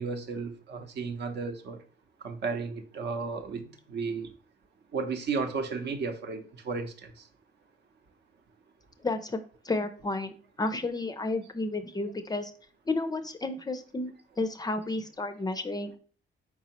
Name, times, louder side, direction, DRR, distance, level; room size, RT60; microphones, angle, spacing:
voice 1, 0.0-1.8 2.2-4.3 4.9-6.9, right 4 dB, 60° right, 0.7 m, -33 dB
voice 2, 9.0-12.5 12.9-16.0, left 2 dB, 20° left, 0.4 m, -32 dB
4.5 x 4.0 x 2.9 m
cardioid pair, 90°, 20 cm